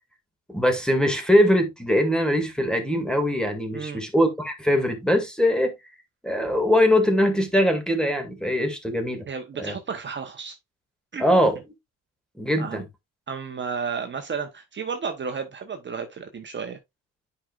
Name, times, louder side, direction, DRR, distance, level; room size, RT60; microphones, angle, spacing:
voice 1, 0.5-5.7 6.2-9.3 9.6-9.8 11.2-11.6 12.4-12.8, equal, 5° left, 2.2 m, -22 dB
voice 2, 9.3-10.6 11.1-11.2 12.6-12.8 13.3-16.8, right 6 dB, 40° right, 1.0 m, -32 dB
9.7 x 5.2 x 2.4 m
cardioid pair, 90°, 30 cm